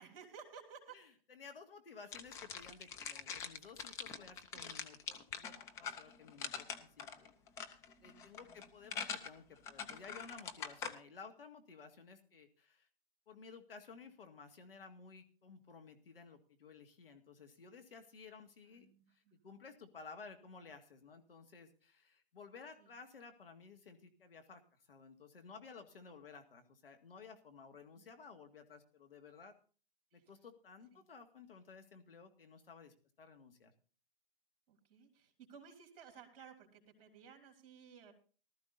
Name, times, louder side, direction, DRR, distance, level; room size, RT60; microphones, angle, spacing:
voice 1, 0.0-1.0 2.0-2.1 4.5-4.8 8.0-8.7 18.6-19.3 22.8-22.9 28.0-28.1 30.1-30.2 30.9-31.0 34.7-38.1, right 7 dB, 40° right, 5 dB, 3.1 m, -57 dB
voice 2, 0.9-7.3 8.0-12.9 13.3-29.5 30.1-33.7, left 5 dB, 70° left, 6 dB, 2.0 m, -55 dB
sound 1, 2.1-10.9, left 6 dB, 10° left, 0.5 m, -44 dB
18.5 x 13.0 x 2.7 m, 0.39 s
figure-of-eight pair, 130°, 29 cm